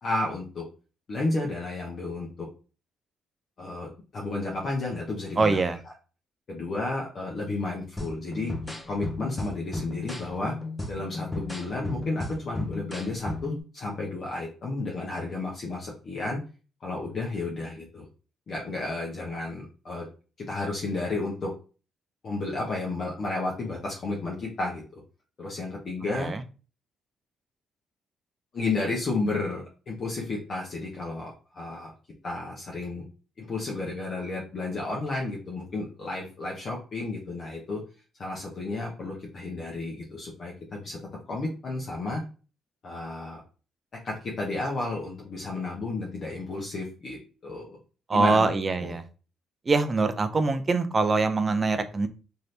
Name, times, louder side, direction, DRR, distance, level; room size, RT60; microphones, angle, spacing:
voice 1, 0.0-0.6 1.1-2.5 3.6-5.6 6.5-8.5 8.9-10.5 10.9-16.4 16.8-18.1 18.5-20.1 20.4-21.5 22.2-25.0 25.4-26.3 28.5-31.9 32.2-33.0 33.4-37.8 38.2-41.0 41.3-42.2 42.8-43.4 44.0-47.7 48.1-48.9, left 2 dB, 45° left, -2 dB, 0.8 m, -32 dB
voice 2, 5.4-5.8 26.2-26.4 48.1-49.0 49.7-52.1, right 3 dB, 25° right, 9 dB, 0.4 m, -24 dB
sound 1, 8.0-13.6, left 2 dB, 10° left, 0.7 m, -35 dB
2.7 x 2.5 x 3.2 m, 0.35 s
cardioid pair, 125°, 0 cm